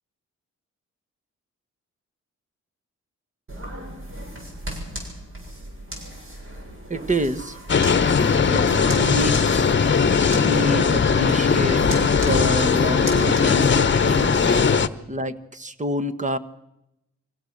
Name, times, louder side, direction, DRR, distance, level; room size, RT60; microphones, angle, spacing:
sound 1, 3.5-14.7, right 1 dB, 45° right, 7.5 m, -36 dB
voice 1, 6.9-7.6 8.5-8.7 9.0-9.7 10.4-11.9 12.2-14.5 15.1-16.4, right 1 dB, 25° right, 11 dB, 1.3 m, -27 dB
sound 2, 7.7-14.9, left 5 dB, 40° left, 1.0 m, -19 dB
25.0 x 16.5 x 6.7 m, 0.89 s
cardioid pair, 70°, 29 cm